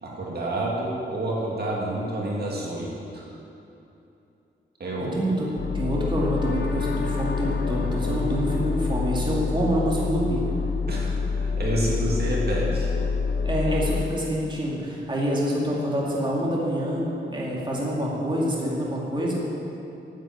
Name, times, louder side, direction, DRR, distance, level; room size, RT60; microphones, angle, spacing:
voice 1, 0.0-3.3 4.8-5.2 10.9-12.9, right 1 dB, 55° right, -4 dB, 2.2 m, -29 dB
voice 2, 5.1-5.5 5.7-10.4 13.4-19.4, equal, 25° right, -4 dB, 2.4 m, -26 dB
sound 1, 5.6-14.0, left 4 dB, 60° left, 1.0 m, -27 dB
9.4 x 8.8 x 7.9 m, 2.8 s
wide cardioid pair, 105°, 20 cm